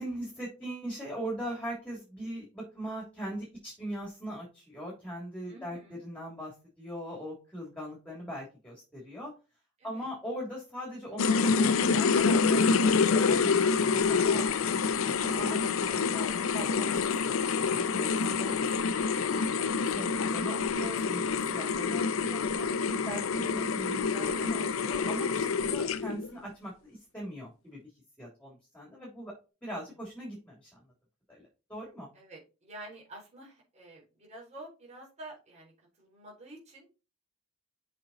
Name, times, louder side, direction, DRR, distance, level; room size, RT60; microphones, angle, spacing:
voice 1, 0.0-9.3 9.8-14.8 15.2-17.1 17.4-18.1 18.4-19.0 19.8-21.2 21.5-27.8 28.2-29.3 29.6-30.8 31.3-32.1, equal, 5° left, -3 dB, 3.2 m, -40 dB
voice 2, 5.4-6.0 9.8-10.1 32.1-35.7 36.0-36.9, right 1 dB, 35° right, -3 dB, 4.0 m, -49 dB
sound 1, 11.2-26.3, left 5 dB, 80° left, 0.6 m, -27 dB
7.5 x 5.3 x 4.2 m, 0.31 s
head